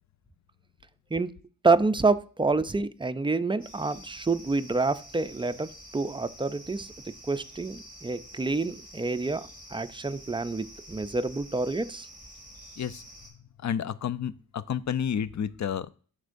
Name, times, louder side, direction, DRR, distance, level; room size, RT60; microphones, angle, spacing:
voice 1, 1.6-12.1, right 3 dB, 15° right, 11 dB, 0.4 m, -28 dB
sound 1, 3.6-13.3, right 1 dB, 20° left, 3.7 m, -48 dB
voice 2, 13.6-15.9, left 8 dB, 50° left, 16 dB, 0.5 m, -30 dB
13.5 x 4.5 x 2.5 m, 0.42 s
cardioid pair, 70°, 38 cm